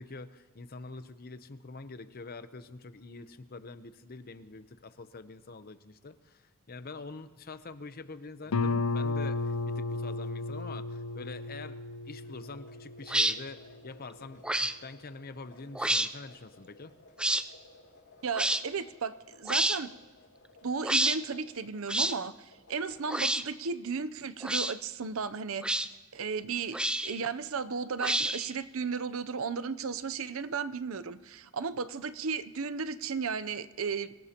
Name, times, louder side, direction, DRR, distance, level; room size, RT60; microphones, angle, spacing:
voice 1, 0.0-11.8 12.1-16.9, left 3 dB, 45° left, 11 dB, 0.8 m, -45 dB
Guitar, 8.5-13.9, left 3 dB, 85° left, 0.6 m, -34 dB
sound 1, 12.2-23.0, left 2 dB, 60° left, 6.3 m, -58 dB
sound 2, 13.1-13.3 14.4-14.7 15.7-16.1 17.2-17.4 18.3-18.6 19.5-19.8 20.8-21.2 21.9-22.1 23.1-23.4 24.4-24.7 25.6-25.9 26.7-27.2 28.0-28.5, right 1 dB, 5° right, 0.4 m, -28 dB
voice 2, 18.2-19.9 20.6-25.6 26.1-26.8 27.0-34.1, right 5 dB, 65° right, 13 dB, 0.7 m, -34 dB
25.5 x 17.5 x 2.9 m, 1.3 s
head